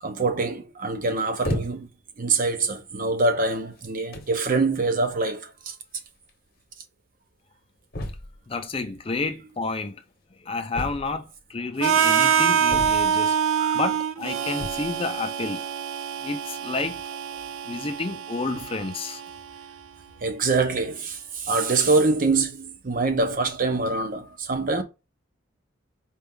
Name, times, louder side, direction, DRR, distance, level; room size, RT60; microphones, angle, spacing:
voice 1, 0.0-1.9 2.2-5.7 8.8-8.9 12.2-12.4 13.6-13.8 18.5-18.6 20.2-24.8, right 3 dB, 45° right, 0.7 m, -25 dB
sound 1, 1.4-2.0 2.8-3.0 3.8-3.9 4.1-4.4 5.7-5.8 6.0-6.1 6.3-6.4 7.9-8.5 10.7-11.4 12.7-13.3 14.5-15.0, left 1 dB, 50° left, 1.0 m, -33 dB
voice 2, 8.5-10.0 10.4-15.7 16.2-17.2 17.7-19.2, left 3 dB, 30° left, 0.5 m, -30 dB
Harmonica, 11.8-19.7, right 8 dB, 85° right, 0.4 m, -25 dB
4.4 x 2.4 x 3.6 m
head